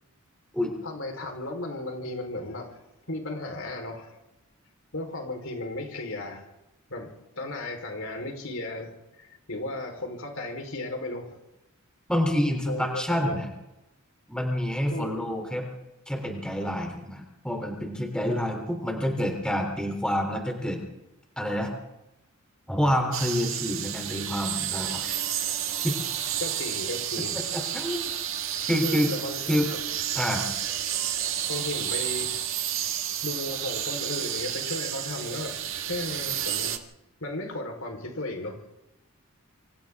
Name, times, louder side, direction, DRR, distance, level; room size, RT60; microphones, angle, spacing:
voice 1, 0.8-2.7 3.1-4.2 4.9-6.5 6.9-11.4 12.7-13.4 14.9-15.3 26.4-27.4 28.8-29.6 31.5-32.4 33.2-35.6 35.9-36.8 37.2-38.6, left 2 dB, 65° left, 3 dB, 4.3 m, -35 dB
voice 2, 12.1-13.5 14.3-15.7 16.1-20.8 21.4-21.7 22.7-25.1 25.8-26.0 27.5-28.0 28.7-29.1 29.5-29.7 30.1-30.4, equal, 5° left, 2 dB, 3.4 m, -27 dB
sound 1, 23.1-36.8, right 10 dB, 60° right, 1.9 m, -31 dB
27.5 x 25.5 x 3.7 m, 0.94 s
head